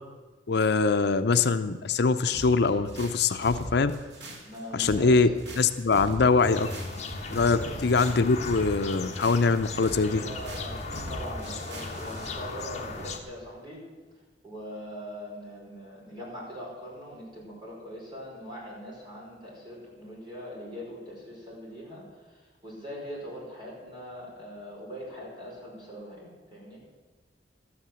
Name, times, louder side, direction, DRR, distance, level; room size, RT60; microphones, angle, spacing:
voice 1, 0.5-3.9 4.7-5.3 5.6-6.7 7.3-10.2, left 4 dB, 65° left, 10 dB, 0.6 m, -23 dB
sound 1, 2.3-12.4, equal, 80° right, 2.4 m, -41 dB
voice 2, 4.4-5.2 7.3-7.7 9.8-13.8 14.4-26.8, equal, 25° right, -5 dB, 5.2 m, -42 dB
sound 2, 6.4-13.2, left 3 dB, 40° left, 1.3 m, -37 dB
13.0 x 8.7 x 7.5 m, 1.3 s
head